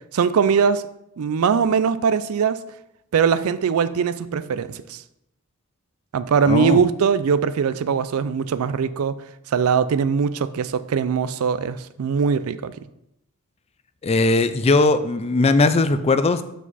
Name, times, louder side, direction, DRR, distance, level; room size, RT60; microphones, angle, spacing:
voice 1, 0.1-0.8 1.2-2.6 3.1-5.0 6.1-9.2 9.5-12.7, right 6 dB, 70° right, 14 dB, 0.4 m, -21 dB
voice 2, 6.5-6.8 14.0-16.4, left 3 dB, 30° left, 11 dB, 0.4 m, -18 dB
7.8 x 4.9 x 4.1 m, 0.83 s
head